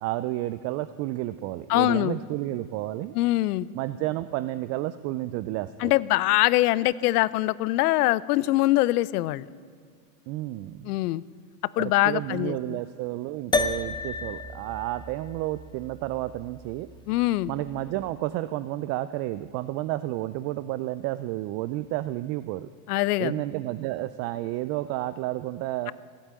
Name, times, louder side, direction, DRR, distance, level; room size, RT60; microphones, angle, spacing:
voice 1, 0.0-3.2 3.7-5.9 10.3-10.9 11.8-16.9 17.5-22.7 23.2-25.9, right 16 dB, 35° right, 14 dB, 0.4 m, -31 dB
voice 2, 1.7-2.2 3.1-3.7 5.8-9.5 10.8-11.2 11.8-12.8 17.1-17.5 22.9-23.3, left 17 dB, 70° left, 21 dB, 0.7 m, -23 dB
sound 1, 13.5-18.1, left 3 dB, 10° left, 0.7 m, -33 dB
15.5 x 8.6 x 8.9 m, 2.2 s
supercardioid pair, 115°, 47 cm